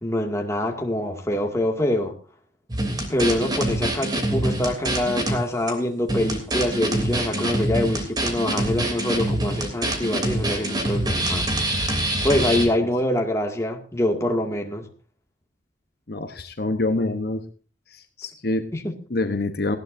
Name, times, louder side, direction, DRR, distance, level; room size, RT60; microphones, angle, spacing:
voice 1, 0.0-2.2 3.1-11.4 12.2-14.9 18.7-18.9, left 1 dB, 15° left, 2.1 m, -25 dB
sound 1, 2.7-5.4 5.7-5.8 6.1-12.7, right 1 dB, 20° right, 3.1 m, -25 dB
voice 2, 16.1-17.4 17.9-18.6 19.1-19.8, left 2 dB, 50° left, 1.0 m, -26 dB
18.5 x 15.5 x 2.7 m
head